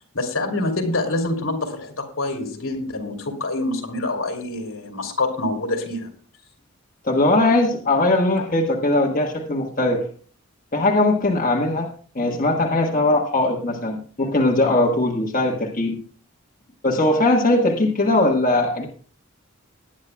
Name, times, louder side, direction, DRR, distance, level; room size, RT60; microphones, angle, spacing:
voice 1, 0.1-6.1, left 2 dB, 75° left, 2 dB, 2.8 m, -26 dB
voice 2, 7.0-10.1 10.7-16.0 16.8-18.9, left 2 dB, 40° left, -2 dB, 1.4 m, -20 dB
20.0 x 9.8 x 2.3 m, 0.43 s
head